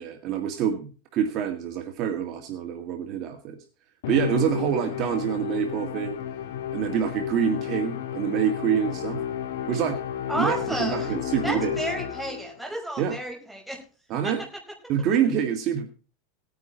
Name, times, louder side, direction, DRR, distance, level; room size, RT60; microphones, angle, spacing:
voice 1, 0.0-3.6 4.1-6.2 6.7-9.2 9.7-10.0 10.3-11.8 13.0-13.2 14.1-14.4 14.9-15.9, right 8 dB, 40° right, 5 dB, 1.8 m, -26 dB
Musical instrument, 4.0-12.6, left 9 dB, 75° left, 2.9 m, -32 dB
voice 2, 10.3-11.1 11.4-13.8, right 1 dB, ahead, 0 dB, 5.3 m, -31 dB
18.0 x 9.6 x 4.4 m, 0.38 s
supercardioid pair, 145°, 0 cm